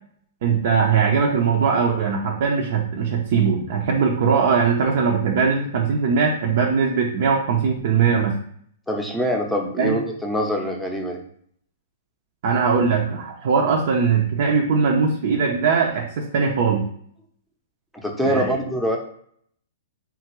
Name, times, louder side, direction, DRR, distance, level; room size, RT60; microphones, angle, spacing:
voice 1, 0.4-8.4 9.8-9.9 12.4-16.9 18.2-18.5, right 5 dB, 60° right, 0 dB, 0.5 m, -20 dB
voice 2, 8.9-11.2 18.0-19.0, equal, ahead, 0 dB, 0.7 m, -24 dB
3.7 x 2.4 x 3.0 m, 0.63 s
hypercardioid pair, 130°, 0 cm